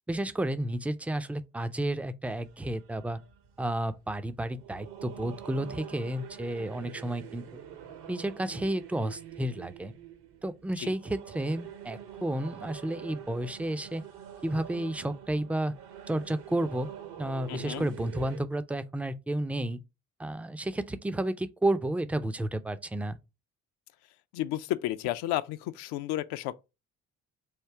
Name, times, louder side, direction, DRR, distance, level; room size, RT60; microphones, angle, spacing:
voice 1, 0.1-3.2 3.6-7.4 8.1-9.9 10.4-14.0 14.4-15.7 16.1-16.9 17.2-19.8 20.2-23.2, right 1 dB, 5° right, 0.3 m, -31 dB
sound 1, 2.3-18.4, right 9 dB, 65° right, 0.8 m, -46 dB
voice 2, 17.5-17.9 24.3-26.5, left 14 dB, 70° left, 0.5 m, -32 dB
3.6 x 2.6 x 4.4 m
hypercardioid pair, 45°, 42 cm